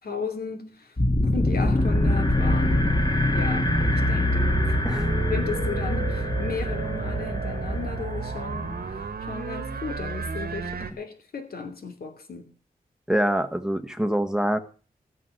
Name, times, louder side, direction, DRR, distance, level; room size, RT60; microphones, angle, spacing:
voice 1, 0.0-4.7 5.3-8.8 9.3-10.7 11.0-12.5, left 5 dB, 75° left, 2.9 m, -34 dB
sound 1, 1.0-9.1, left 1 dB, 30° left, 2.4 m, -24 dB
sound 2, 1.6-10.9, right 5 dB, 80° right, 1.6 m, -34 dB
voice 2, 13.1-14.6, right 1 dB, 5° right, 1.4 m, -25 dB
16.0 x 6.8 x 7.8 m
wide cardioid pair, 90°, 16 cm